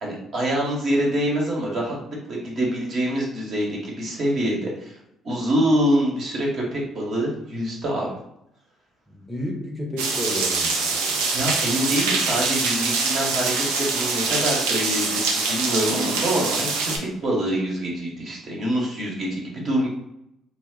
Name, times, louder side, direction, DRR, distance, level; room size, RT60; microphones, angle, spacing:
voice 1, 0.0-5.0 5.2-8.1 11.3-19.9, equal, 55° right, -3 dB, 0.9 m, -25 dB
voice 2, 9.1-11.2, equal, 5° left, 0 dB, 0.6 m, -32 dB
sound 1, 10.0-17.0, right 4 dB, 85° right, 0.4 m, -24 dB
2.3 x 2.0 x 3.6 m, 0.82 s
hypercardioid pair, 60°, 0 cm